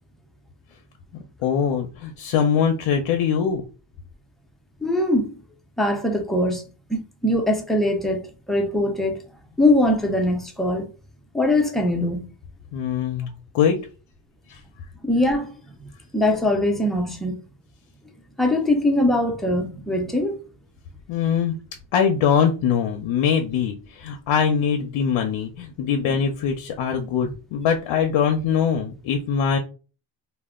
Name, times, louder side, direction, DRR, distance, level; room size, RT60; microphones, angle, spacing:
voice 1, 1.4-3.6 12.7-13.8 14.5-14.6 21.1-21.5 21.9-29.6, left 7 dB, 70° left, 0.6 m, -22 dB
voice 2, 4.8-5.4 5.8-9.2 9.6-10.9 11.3-12.3 15.0-15.6 16.1-17.4 18.4-20.4, left 1 dB, ahead, 0.6 m, -22 dB
2.2 x 2.1 x 3.5 m
cardioid pair, 85°, 50 cm